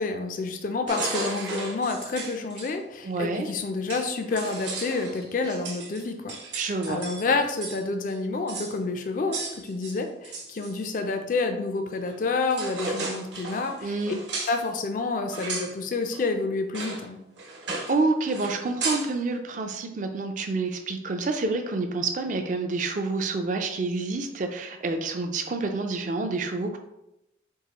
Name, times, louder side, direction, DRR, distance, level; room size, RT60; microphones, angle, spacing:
voice 1, 0.0-6.4 6.9-13.9 14.4-17.2, left 3 dB, 45° left, 6 dB, 0.4 m, -29 dB
sound 1, 0.9-2.7 3.5-3.6 3.9-8.2 8.5-8.8 9.3-10.8 12.1-12.2 12.5-14.6 15.3-15.7 16.1-16.2 16.7-17.0 17.4-18.0 18.3-19.1, right 3 dB, 70° right, 1.0 m, -35 dB
voice 2, 3.0-3.5 6.6-7.0 13.8-14.2 17.9-26.8, right 3 dB, 45° right, 5 dB, 0.4 m, -28 dB
4.6 x 2.7 x 2.9 m, 0.86 s
head